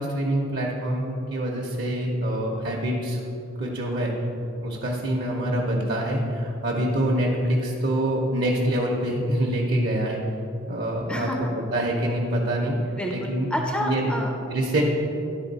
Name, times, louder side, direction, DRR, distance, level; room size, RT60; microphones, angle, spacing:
voice 1, 0.0-3.2 3.6-4.1 4.6-10.2 10.7-11.3 11.7-12.7 13.1-13.5 13.8-14.0 14.5-14.8, right 1 dB, 50° right, -2 dB, 0.7 m, -25 dB
voice 2, 11.1-11.5 12.8-14.3, equal, 5° left, 1 dB, 0.4 m, -29 dB
10.5 x 3.9 x 4.0 m, 2.8 s
head